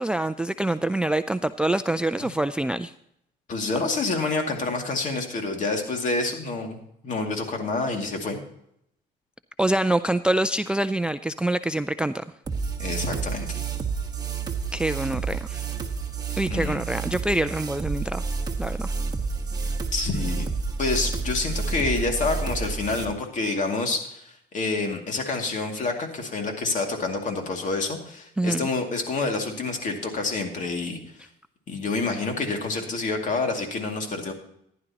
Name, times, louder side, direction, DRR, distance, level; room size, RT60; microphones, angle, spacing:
voice 1, 0.0-2.9 9.6-12.2 14.7-15.7 16.4-18.2 18.6-18.9 28.4-28.7, right 1 dB, 5° right, 13 dB, 0.3 m, -25 dB
voice 2, 3.5-6.8 7.0-8.4 12.8-13.6 16.3-16.8 19.9-20.5 20.8-31.3 31.7-34.3, left 3 dB, 50° left, 3 dB, 2.4 m, -28 dB
sound 1, 12.5-23.0, right 4 dB, 25° right, 1.4 m, -30 dB
15.0 x 11.0 x 2.9 m, 0.73 s
cardioid pair, 110°, 17 cm